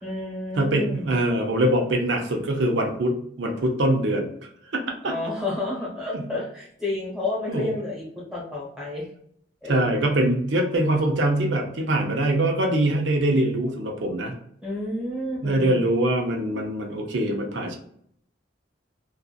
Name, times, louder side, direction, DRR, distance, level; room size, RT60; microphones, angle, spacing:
voice 1, 0.0-1.2 5.0-9.1 9.6-9.8 14.6-15.8, left 2 dB, 5° right, -5 dB, 1.0 m, -30 dB
voice 2, 0.6-4.3 5.0-5.1 6.1-6.2 7.5-7.7 9.7-14.3 15.4-17.8, right 1 dB, 85° right, 1 dB, 0.6 m, -23 dB
2.6 x 2.4 x 2.4 m, 0.68 s
head